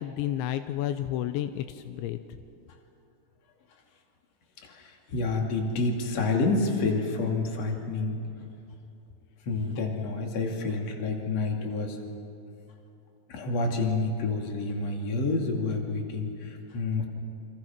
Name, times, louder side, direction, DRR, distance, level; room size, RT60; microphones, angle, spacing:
voice 1, 0.0-2.2, left 12 dB, 85° left, 10 dB, 3.0 m, -31 dB
voice 2, 4.6-8.2 9.4-12.0 13.3-17.1, left 3 dB, 40° left, 2 dB, 3.0 m, -29 dB
28.5 x 26.5 x 6.0 m, 2.8 s
omnidirectional pair, 5.3 m